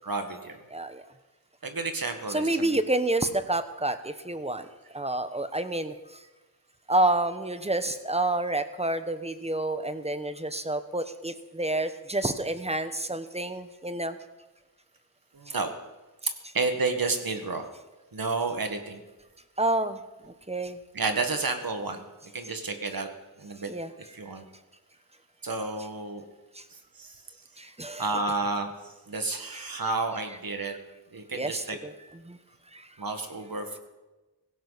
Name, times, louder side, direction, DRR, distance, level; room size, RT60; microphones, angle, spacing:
voice 1, 0.0-0.6 1.6-2.8 15.3-15.7 16.5-17.7 18.1-19.0 20.9-22.0 22.3-23.1 23.4-23.7 24.1-24.4 25.4-26.2 26.7-27.2 28.0-30.7 31.1-31.8 33.0-33.8, right 3 dB, 60° right, 6 dB, 1.9 m, -31 dB
voice 2, 0.7-1.0 2.3-4.7 4.9-6.2 6.9-14.2 19.6-20.0 20.5-20.8 23.7-23.9 26.5-26.6 27.6-28.0 29.5-29.7 31.3-31.9 32.2-32.4 32.7-32.9, right 2 dB, 15° right, 10 dB, 1.1 m, -29 dB
17.5 x 16.0 x 4.2 m, 1.1 s
wide cardioid pair, 60°, 39 cm